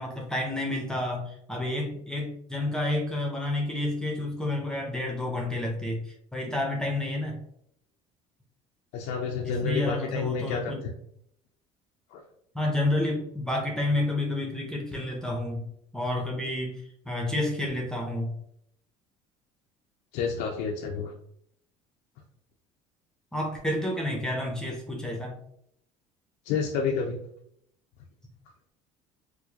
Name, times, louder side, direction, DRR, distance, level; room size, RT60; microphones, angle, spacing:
voice 1, 0.0-7.4 9.4-10.8 12.5-15.7 15.9-18.3 23.3-25.4, left 1 dB, 5° left, 0 dB, 0.6 m, -30 dB
voice 2, 8.9-10.7 12.1-12.2 20.1-21.1 26.5-27.2, left 5 dB, 85° left, 2 dB, 0.5 m, -29 dB
4.6 x 2.1 x 2.8 m, 0.70 s
cardioid pair, 130°, 13 cm